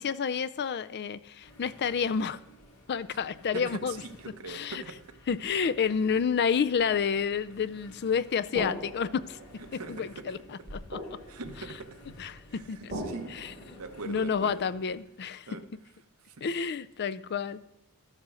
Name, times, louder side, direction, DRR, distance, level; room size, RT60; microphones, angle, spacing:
voice 1, 0.0-2.4 2.9-4.0 4.5-4.8 5.3-9.4 9.7-10.4 10.7-11.0 12.2-12.9 13.3-13.5 14.1-15.5 16.4-17.7, left 6 dB, 50° left, 0.4 m, -29 dB
sound 1, 1.4-15.0, equal, 80° left, 2.6 m, -55 dB
sound 2, 2.9-3.0 7.3-7.4 8.5-14.7, right 1 dB, 40° right, 3.6 m, -42 dB
voice 2, 3.5-5.1 9.7-10.4 11.3-12.0 12.5-14.7 15.5-15.7 16.2-16.4, right 3 dB, 70° right, 1.0 m, -42 dB
12.5 x 7.4 x 6.3 m
head